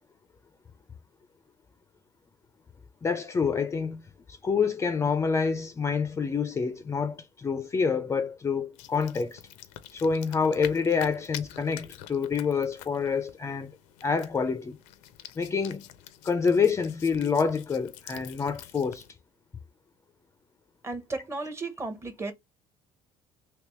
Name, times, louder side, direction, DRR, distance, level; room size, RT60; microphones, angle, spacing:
voice 1, 3.0-4.0 4.3-9.4 9.9-13.7 14.0-14.8 15.4-15.8 16.2-19.0, left 5 dB, 25° left, 0.4 m, -27 dB
sound 1, 8.7-19.1, left 12 dB, 90° left, 0.5 m, -46 dB
voice 2, 20.8-22.3, right 3 dB, 20° right, 0.9 m, -34 dB
3.3 x 2.9 x 3.0 m
cardioid pair, 105°, 12 cm